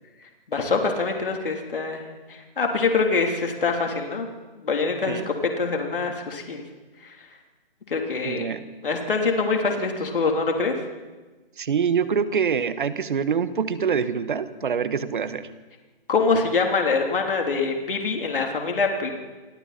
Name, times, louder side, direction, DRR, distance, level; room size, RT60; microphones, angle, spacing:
voice 1, 0.5-2.0 2.3-4.3 4.6-5.2 5.6-6.6 7.0-7.1 7.9-8.5 8.8-10.8 16.1-19.1, left 4 dB, 65° left, 2 dB, 3.6 m, -24 dB
voice 2, 8.2-8.7 11.6-15.5, right 6 dB, 60° right, 13 dB, 1.6 m, -25 dB
27.5 x 24.0 x 4.4 m, 1.2 s
figure-of-eight pair, 140°, 29 cm